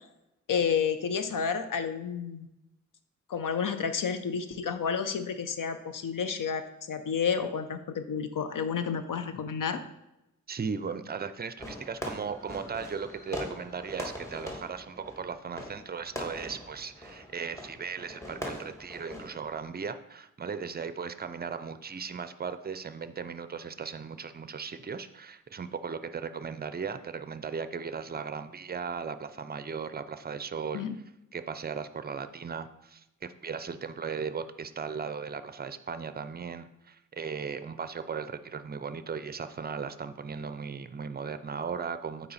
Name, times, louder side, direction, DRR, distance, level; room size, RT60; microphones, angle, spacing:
voice 1, 0.5-2.5 3.3-9.8 30.7-31.0, left 6 dB, 85° left, 9 dB, 0.7 m, -30 dB
voice 2, 10.5-30.9 31.3-42.3, right 6 dB, 30° right, 12 dB, 0.4 m, -37 dB
Fireworks, 11.6-19.7, left 1 dB, 10° left, 1.3 m, -42 dB
8.6 x 4.3 x 4.1 m, 0.88 s
wide cardioid pair, 110°, 31 cm